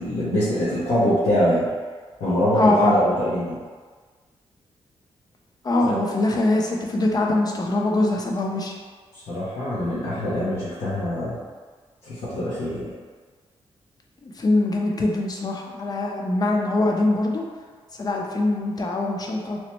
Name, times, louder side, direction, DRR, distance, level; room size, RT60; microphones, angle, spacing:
voice 1, 0.0-1.6 2.2-3.6 5.8-5.9 9.3-11.4 12.0-12.9, equal, 85° left, -11 dB, 0.7 m, -23 dB
voice 2, 2.6-2.9 5.6-8.7 14.2-17.4 18.0-19.6, left 2 dB, 35° left, 0 dB, 0.5 m, -23 dB
3.0 x 2.1 x 3.0 m, 1.5 s
cardioid pair, 75°, 11 cm